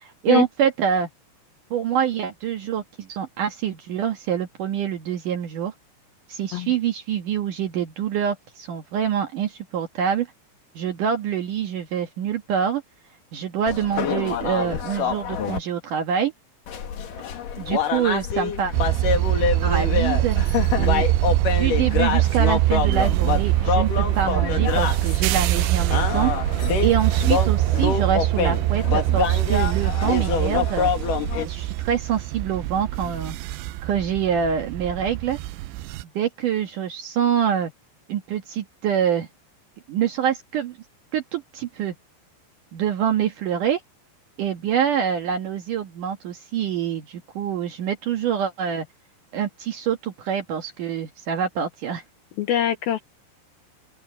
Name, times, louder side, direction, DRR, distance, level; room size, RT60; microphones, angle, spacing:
voice 1, 0.0-1.1 1.7-5.7 6.3-10.3 10.8-12.8 13.3-16.3 17.6-18.7 19.6-20.4 20.7-21.1 21.5-26.3 26.8-30.9 31.4-33.4 33.8-35.4 36.1-37.7 38.1-39.3 39.9-40.8 41.1-41.9 42.7-43.8 44.4-48.9 49.3-52.0, right 8 dB, 60° right, 2.4 m, -25 dB
sound 1, 13.7-15.6 16.7-31.5, left 7 dB, 55° left, 3.3 m, -26 dB
sound 2, 18.7-36.0, right 16 dB, 85° right, 2.9 m, -23 dB
voice 2, 52.4-53.0, left 10 dB, 75° left, 2.4 m, -23 dB
open air
omnidirectional pair, 5.1 m